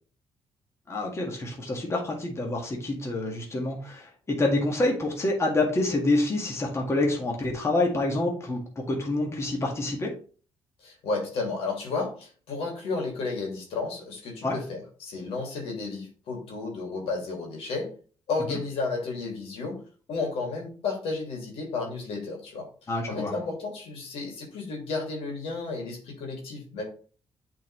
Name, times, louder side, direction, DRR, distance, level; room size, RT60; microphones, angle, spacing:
voice 1, 0.9-10.1 14.4-14.6 18.5-18.6 22.9-23.3, left 2 dB, 30° left, -1 dB, 1.8 m, -27 dB
voice 2, 10.8-17.9 18.3-19.8 20.1-26.8, left 3 dB, 75° left, 0 dB, 2.5 m, -32 dB
8.2 x 4.1 x 3.1 m, 0.40 s
cardioid pair, 85°, 10 cm